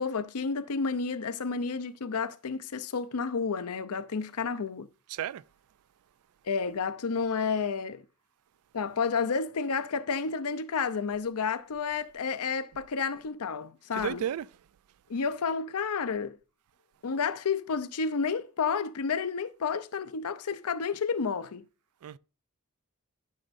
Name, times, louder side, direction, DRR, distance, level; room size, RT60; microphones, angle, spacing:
voice 1, 0.0-4.9 6.5-8.0 8.7-14.2 15.1-16.4 17.0-21.6, left 5 dB, 85° left, 0.6 m, -31 dB
voice 2, 5.1-5.4 13.9-14.5 22.0-22.2, right 10 dB, 75° right, 0.3 m, -33 dB
12.0 x 6.4 x 2.6 m
head